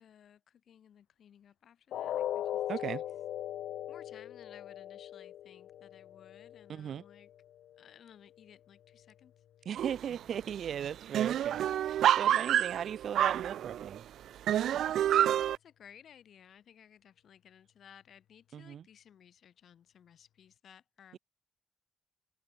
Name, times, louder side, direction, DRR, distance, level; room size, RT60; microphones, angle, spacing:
voice 1, 0.0-3.0 3.9-7.3 7.8-9.7 15.1-21.2, left 9 dB, 55° left, 5.2 m, -58 dB
sound 1, 1.9-7.9 8.3-8.5 8.9-9.0, left 11 dB, 85° left, 0.9 m, -40 dB
voice 2, 2.7-3.0 6.7-7.0 9.6-14.1 18.5-18.8 21.1-21.2, right 9 dB, 55° right, 1.8 m, -38 dB
sound 2, 9.8-10.2 10.5-10.6 10.8-14.0 14.5-15.6, right 11 dB, 75° right, 0.3 m, -28 dB
open air
wide cardioid pair, 160°, 0 cm